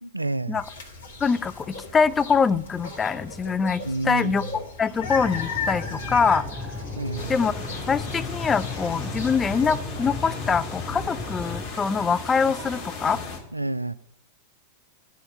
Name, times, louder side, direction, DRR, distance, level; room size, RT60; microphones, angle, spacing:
voice 1, 0.0-0.6 3.8-4.6 7.0-7.3 13.5-13.9, right 2 dB, 85° right, 0.3 m, -29 dB
sound 1, 0.5-9.8, left 4 dB, 65° left, 2.1 m, -37 dB
voice 2, 1.2-4.4 4.8-6.5 7.3-7.5 7.9-13.2, left 5 dB, 20° left, 0.5 m, -24 dB
sound 2, 5.0-11.7, left 3 dB, 5° right, 2.9 m, -35 dB
sound 3, 7.2-13.4, left 3 dB, 40° left, 2.6 m, -36 dB
11.5 x 5.6 x 8.4 m
figure-of-eight pair, 90°, 0 cm